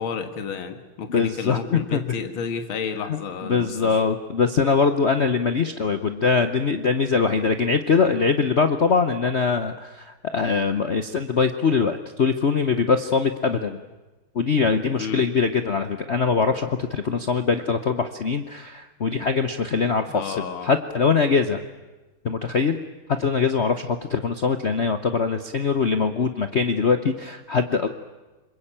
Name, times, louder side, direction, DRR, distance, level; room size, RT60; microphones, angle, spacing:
voice 1, 0.0-4.0 14.9-15.2 20.1-20.7, left 6 dB, 70° left, 7 dB, 2.5 m, -31 dB
voice 2, 1.1-2.1 3.1-13.8 14.3-21.6 22.2-22.8 23.2-27.9, left 5 dB, 50° left, 9 dB, 0.8 m, -22 dB
26.0 x 22.0 x 8.8 m, 1.1 s
omnidirectional pair, 2.4 m